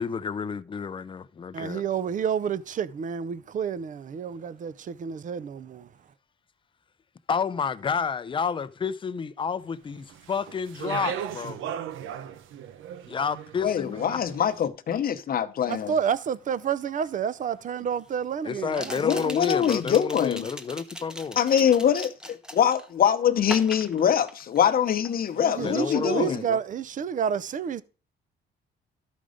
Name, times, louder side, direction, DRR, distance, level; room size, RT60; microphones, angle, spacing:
voice 1, 0.0-1.8 7.3-11.6 13.1-14.2 18.4-21.4 25.6-26.6, left 6 dB, 25° left, 0.5 m, -30 dB
voice 2, 1.5-5.9 15.7-19.5 25.4-27.8, right 7 dB, 40° right, 0.6 m, -30 dB
Speech, 10.1-14.4, right 9 dB, 85° right, 0.9 m, -37 dB
voice 3, 13.6-15.9 19.0-20.4 21.4-26.4, left 9 dB, 50° left, 0.9 m, -24 dB
sound 1, 17.0-17.1 18.7-22.9 23.4-24.8 25.0-25.4, equal, 5° right, 0.9 m, -40 dB
12.5 x 5.2 x 5.0 m
cardioid pair, 125°, 20 cm